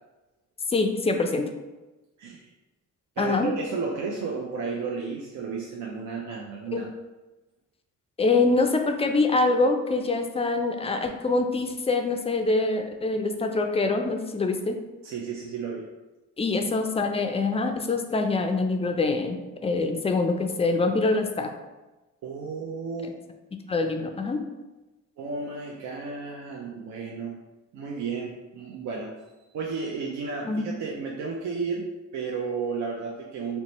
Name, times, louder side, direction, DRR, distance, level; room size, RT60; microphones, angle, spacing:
voice 1, 0.7-1.4 3.2-3.5 6.7-6.9 8.2-14.8 16.4-19.4 19.6-21.5 23.0-23.1 23.7-24.4 30.5-30.6, left 3 dB, 20° left, 5 dB, 0.3 m, -24 dB
voice 2, 2.2-2.5 3.2-6.9 15.0-15.9 22.2-23.1 25.2-27.4 27.7-29.1 29.5-33.6, right 4 dB, 70° right, -1 dB, 0.5 m, -33 dB
2.8 x 2.2 x 4.0 m, 1.1 s
cardioid pair, 90°, 30 cm